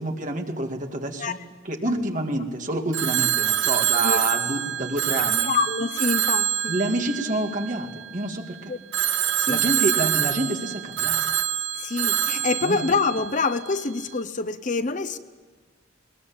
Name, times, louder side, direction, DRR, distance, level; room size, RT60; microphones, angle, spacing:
voice 1, 0.0-5.5 6.7-8.7 9.5-11.3 12.6-12.8, right 1 dB, 40° right, 3 dB, 2.4 m, -28 dB
Telephone, 2.9-8.2 8.9-13.8, right 11 dB, 65° right, 1.3 m, -26 dB
voice 2, 5.5-6.7 8.7-8.8 9.4-9.6 11.8-15.2, left 4 dB, 40° left, 11 dB, 0.8 m, -26 dB
21.0 x 20.5 x 8.9 m, 1.4 s
head